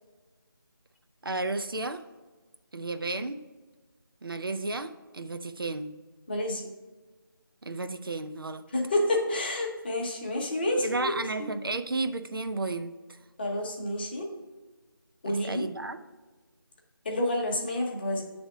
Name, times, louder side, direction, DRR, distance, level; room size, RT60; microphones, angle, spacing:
voice 1, 1.2-2.0 2.7-3.4 4.2-5.9 7.6-8.6 10.8-12.9 15.2-16.0, right 2 dB, 70° right, 8 dB, 0.5 m, -33 dB
voice 2, 6.3-6.7 8.7-11.1 11.4-11.5 13.4-14.3 15.2-15.7 17.0-18.2, left 1 dB, 25° left, -1 dB, 0.9 m, -29 dB
7.9 x 3.5 x 4.9 m, 1.3 s
figure-of-eight pair, 165°, 12 cm